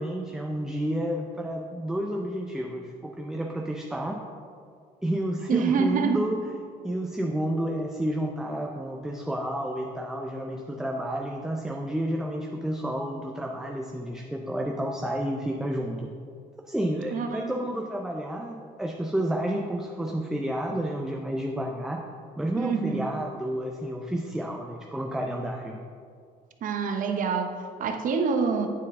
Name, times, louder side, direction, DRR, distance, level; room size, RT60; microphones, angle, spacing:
voice 1, 0.0-4.2 5.0-6.4 6.8-16.1 16.6-22.0 22.4-25.8, right 1 dB, 5° right, 1 dB, 0.4 m, -30 dB
voice 2, 5.5-6.2 17.1-17.7 22.6-23.1 26.6-28.7, right 5 dB, 50° right, 6 dB, 0.7 m, -26 dB
9.1 x 4.6 x 3.6 m, 2.2 s
cardioid pair, 110°, 17 cm